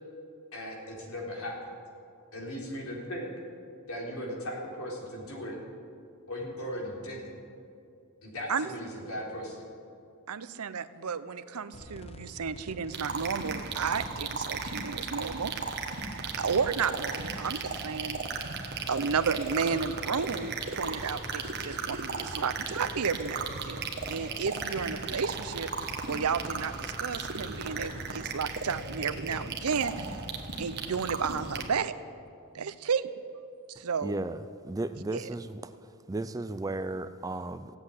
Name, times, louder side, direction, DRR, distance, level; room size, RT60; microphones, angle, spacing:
voice 1, 0.5-1.6 2.3-3.3 3.9-5.6 6.3-7.3 8.2-9.6, equal, 80° left, -2 dB, 3.7 m, -37 dB
voice 2, 10.3-15.5 16.4-18.2 18.9-25.7 26.1-30.2 30.6-31.9 32.5-33.1 33.7-34.2 35.1-35.3, right 6 dB, 85° right, 14 dB, 0.7 m, -32 dB
sound 1, 11.7-31.7, left 1 dB, 30° left, 0.7 m, -48 dB
sound 2, 12.9-31.6, right 4 dB, 50° right, 1.4 m, -36 dB
voice 3, 34.0-35.7 36.1-37.7, right 2 dB, 15° right, 11 dB, 0.4 m, -35 dB
16.0 x 8.0 x 9.7 m, 2.5 s
head